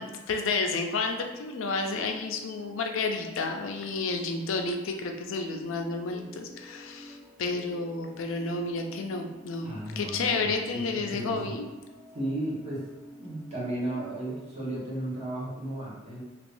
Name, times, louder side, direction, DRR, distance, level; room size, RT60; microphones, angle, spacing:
voice 1, 0.0-11.7, left 3 dB, 90° left, 4 dB, 0.4 m, -31 dB
sound 1, 1.0-14.4, equal, 10° right, 0.3 m, -50 dB
voice 2, 9.6-11.6 12.1-12.8 13.2-16.2, right 1 dB, 35° right, -7 dB, 1.2 m, -34 dB
3.4 x 2.9 x 2.5 m, 1.1 s
head